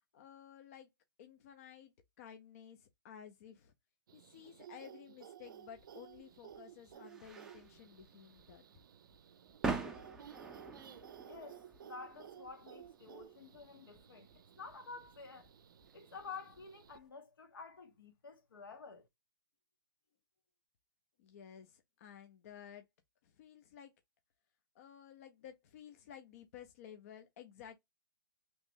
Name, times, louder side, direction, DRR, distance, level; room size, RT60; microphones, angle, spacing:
voice 1, 0.1-0.9 1.2-3.7 4.1-8.6 21.2-22.9 23.2-23.9 24.7-27.8, left 9 dB, 40° left, 0.6 m, -54 dB
sound 1, 4.1-17.0, right 9 dB, 65° right, 0.5 m, -56 dB
sound 2, 5.7-17.0, right 4 dB, 5° right, 0.4 m, -46 dB
voice 2, 11.2-14.3 14.6-15.5 15.9-19.1, left 5 dB, 80° left, 1.4 m, -50 dB
3.0 x 2.5 x 3.5 m
hypercardioid pair, 155°, 12 cm